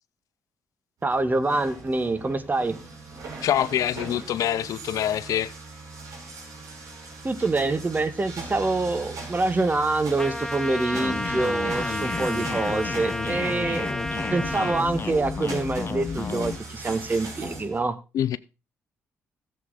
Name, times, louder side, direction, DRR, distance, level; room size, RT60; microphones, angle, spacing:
voice 1, 1.0-2.7 7.2-14.0 14.3-17.9, right 3 dB, 30° right, 1.7 m, -26 dB
sound 1, 1.0-17.8, right 3 dB, 65° right, 5.2 m, -40 dB
voice 2, 3.4-5.5 18.1-18.4, left 11 dB, 70° left, 0.5 m, -25 dB
Trumpet, 10.2-14.9, equal, 10° left, 1.5 m, -32 dB
sound 2, 10.9-16.6, left 5 dB, 40° left, 1.0 m, -32 dB
14.5 x 7.6 x 4.0 m
hypercardioid pair, 50°, 6 cm